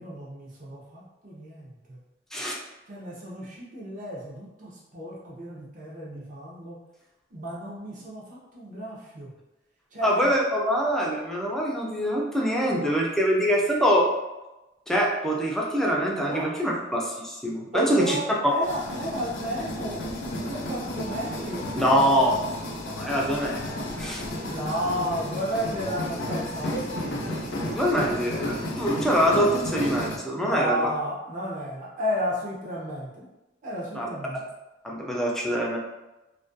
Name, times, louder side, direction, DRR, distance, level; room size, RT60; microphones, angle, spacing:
voice 1, 0.0-2.0 2.9-6.8 7.3-9.3 9.9-10.3 16.2-16.5 17.7-22.0 24.4-27.5 30.3-33.3 33.6-34.4, equal, 45° right, -5 dB, 0.6 m, -33 dB
voice 2, 10.0-14.1 14.9-18.2 21.8-22.3 22.9-23.6 24.0-24.2 27.6-30.8 33.9-34.1 34.8-35.8, equal, ahead, -2 dB, 0.3 m, -24 dB
sound 1, 18.6-30.2, left 1 dB, 70° left, 0.5 m, -33 dB
2.4 x 2.2 x 2.5 m, 1.0 s
head